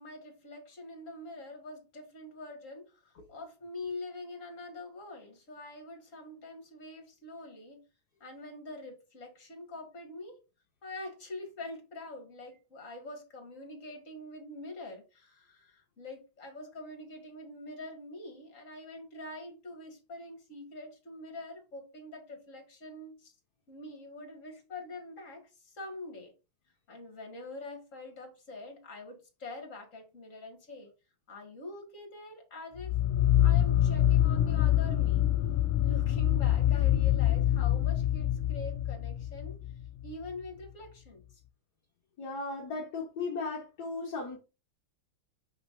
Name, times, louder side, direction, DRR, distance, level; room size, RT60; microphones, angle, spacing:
voice 1, 0.0-7.8 8.2-10.4 10.8-23.3 23.7-26.3 26.9-30.9 31.3-33.0 33.4-35.3 35.8-39.6 40.0-41.4, left 2 dB, 35° left, 2.3 m, -45 dB
sound 1, 32.8-40.1, left 12 dB, 90° left, 1.5 m, -26 dB
voice 2, 42.2-44.4, left 3 dB, 55° left, 1.6 m, -36 dB
6.5 x 5.8 x 2.6 m
omnidirectional pair, 2.4 m